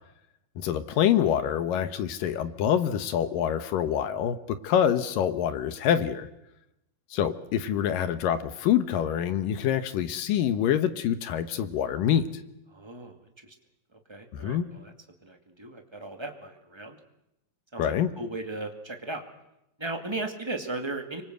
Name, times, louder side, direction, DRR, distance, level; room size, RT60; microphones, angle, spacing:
voice 1, 0.6-4.4 4.6-6.3 7.1-12.2 14.3-14.7 17.8-18.1, left 9 dB, 70° left, 11 dB, 2.6 m, -26 dB
voice 2, 12.7-13.5 14.1-14.9 15.2-17.0 17.7-19.2 19.8-21.2, right 2 dB, 10° right, 5 dB, 1.3 m, -36 dB
25.5 x 24.5 x 8.0 m, 0.87 s
omnidirectional pair, 4.4 m